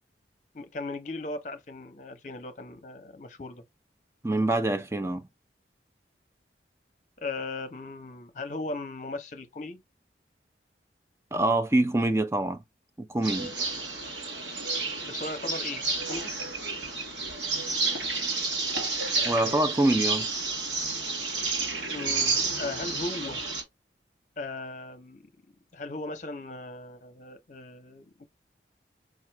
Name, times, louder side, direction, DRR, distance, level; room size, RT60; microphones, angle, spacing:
voice 1, 0.5-3.6 7.2-9.8 15.0-16.3 21.9-23.4 24.4-25.2 25.7-28.3, left 2 dB, 45° left, 0.8 m, -37 dB
voice 2, 4.2-5.2 11.3-12.6 13.0-13.5 19.2-20.3, right 2 dB, 15° right, 0.5 m, -25 dB
sound 1, 13.2-23.6, right 3 dB, 90° right, 1.6 m, -30 dB
5.0 x 2.4 x 3.0 m
head